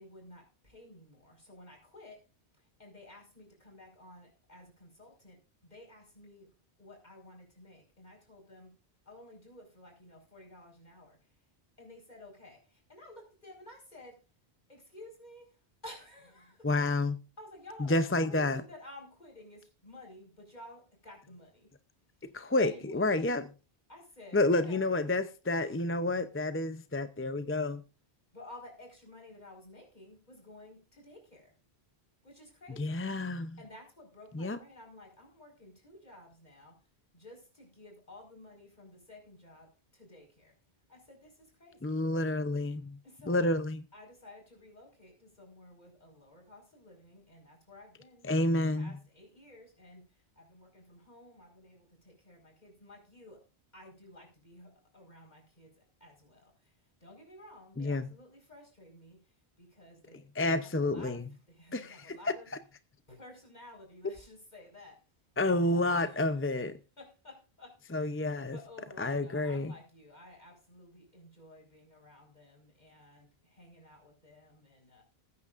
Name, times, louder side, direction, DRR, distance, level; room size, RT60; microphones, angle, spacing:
voice 1, 0.0-2.2 2.5-6.5 6.8-8.7 9.0-11.5 11.8-14.2 14.7-16.7 17.4-21.7 22.1-23.2 23.9-25.1 25.6-25.8 28.3-31.5 32.2-33.1 33.6-36.8 37.1-40.5 40.9-42.0 43.0-43.6 43.9-48.3 48.7-53.4 53.7-62.5 63.1-65.0 65.6-66.6 67.0-75.0, left 1 dB, 45° left, 5.0 m, -53 dB
voice 2, 16.6-17.2 17.8-18.6 22.3-23.5 24.3-27.8 32.8-33.6 34.3-34.6 41.8-43.0 43.3-43.8 48.2-48.9 57.8-58.1 60.4-61.2 61.7-62.2 65.4-66.8 67.9-68.6 69.0-69.7, left 2 dB, 20° left, 0.4 m, -29 dB
20.0 x 9.5 x 2.5 m
omnidirectional pair, 1.1 m